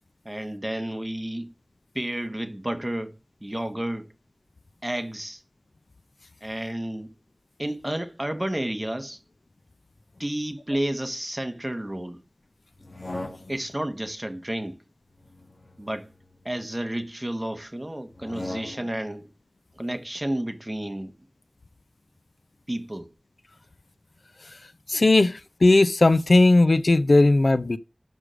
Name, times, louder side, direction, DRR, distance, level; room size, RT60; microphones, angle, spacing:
voice 1, 0.2-1.5 1.9-4.1 4.8-5.4 6.4-7.1 7.6-9.2 10.2-12.2 13.5-14.8 15.8-16.1 16.4-19.3 19.7-21.1 22.7-23.1, right 1 dB, 20° right, 1.1 m, -31 dB
sound 1, 12.8-13.8 15.1-16.8 18.1-19.1, left 2 dB, 40° left, 1.2 m, -39 dB
voice 2, 24.9-27.8, left 2 dB, 75° left, 0.5 m, -18 dB
6.2 x 4.9 x 5.0 m
wide cardioid pair, 55°, 0 cm